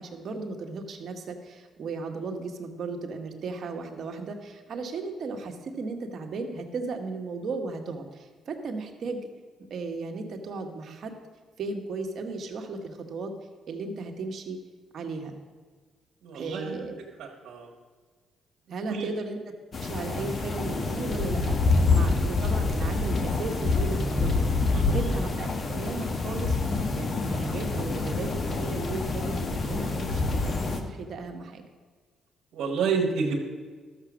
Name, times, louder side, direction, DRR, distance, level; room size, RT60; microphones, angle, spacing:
voice 1, 0.0-9.2 9.7-11.1 11.6-13.3 13.7-14.6 14.9-15.3 16.3-17.0 18.7-19.5 19.8-31.6, right 3 dB, 60° right, 3 dB, 1.6 m, -36 dB
voice 2, 16.2-16.8 17.2-17.7 18.9-19.1 21.9-22.0 24.7-25.0 32.5-33.4, right 5 dB, 75° right, -1 dB, 1.5 m, -29 dB
sound 1, 19.7-30.8, left 3 dB, 45° left, 1.3 m, -26 dB
13.0 x 7.0 x 6.3 m, 1.5 s
cardioid pair, 90°, 0 cm